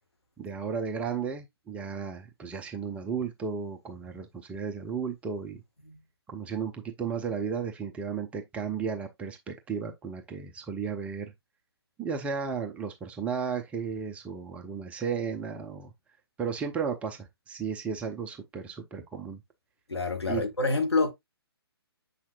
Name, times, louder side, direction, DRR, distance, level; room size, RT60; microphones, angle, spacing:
voice 1, 0.4-5.6 6.3-11.3 12.0-15.9 16.4-19.4 20.3-20.4, right 6 dB, 10° right, 0.6 m, -34 dB
voice 2, 19.9-21.1, left 3 dB, 80° left, 1.8 m, -27 dB
7.2 x 5.7 x 2.3 m
figure-of-eight pair, 130°, 13 cm